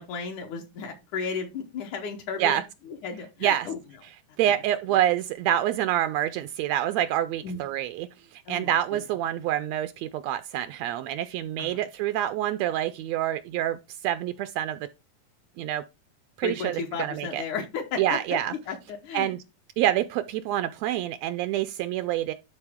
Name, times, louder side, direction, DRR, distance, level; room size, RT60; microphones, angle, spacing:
voice 1, 0.0-2.6 3.0-3.8 7.4-7.6 8.5-8.7 11.6-11.8 16.4-19.4, left 5 dB, 75° left, 2.5 m, -34 dB
voice 2, 4.4-14.8 15.6-15.8 16.4-17.4 18.0-18.5 19.1-19.4 19.8-22.3, right 12 dB, 90° right, 1.5 m, -27 dB
12.0 x 4.1 x 3.6 m
omnidirectional pair, 3.6 m